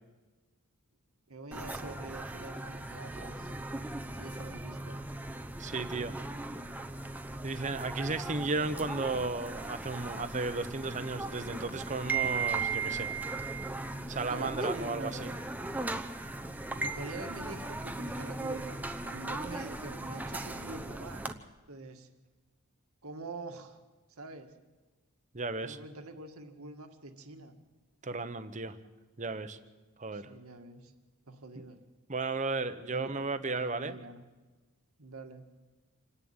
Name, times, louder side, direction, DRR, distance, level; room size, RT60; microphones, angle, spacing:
voice 1, 1.3-3.5 4.1-5.0 14.2-15.7 16.8-21.2 21.7-22.1 23.0-23.8 24.1-24.5 25.6-27.5 30.1-30.9 31.3-31.8 32.9-34.2 35.0-35.5, right 2 dB, 80° right, 5 dB, 2.0 m, -45 dB
sound 1, 1.5-21.3, right 3 dB, 5° right, 0.8 m, -37 dB
voice 2, 5.6-6.1 7.4-13.1 14.1-15.3 25.3-25.8 28.0-28.8 29.2-29.6 30.0-30.3 32.1-33.9, right 3 dB, 35° right, 10 dB, 1.0 m, -34 dB
27.0 x 11.0 x 9.0 m, 1.2 s
head